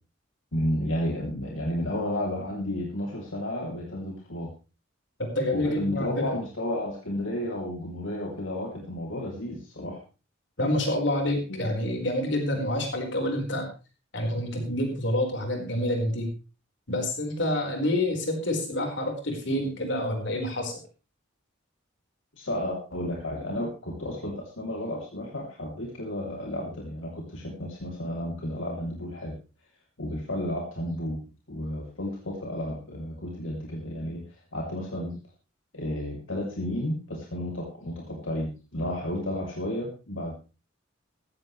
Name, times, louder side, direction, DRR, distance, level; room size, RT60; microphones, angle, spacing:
voice 1, 0.5-4.5 5.5-10.0 11.5-11.8 22.3-29.3 30.0-35.2 35.7-40.3, left 1 dB, 80° left, -1 dB, 3.0 m, -32 dB
voice 2, 5.2-6.2 10.6-13.7 14.1-16.3 16.9-20.8, left 1 dB, 60° left, 3 dB, 4.6 m, -28 dB
15.5 x 14.5 x 3.2 m, 0.32 s
head